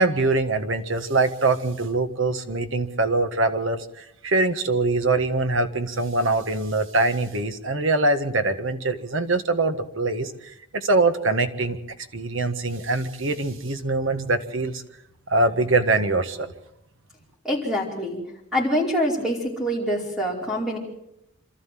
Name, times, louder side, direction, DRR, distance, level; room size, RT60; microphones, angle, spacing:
voice 1, 0.0-10.3 10.7-11.8 12.1-14.8 15.3-16.5, right 2 dB, 65° right, 8 dB, 1.6 m, -23 dB
voice 2, 17.4-18.2 18.5-20.8, equal, ahead, -3 dB, 4.9 m, -25 dB
27.0 x 13.0 x 7.7 m, 0.82 s
head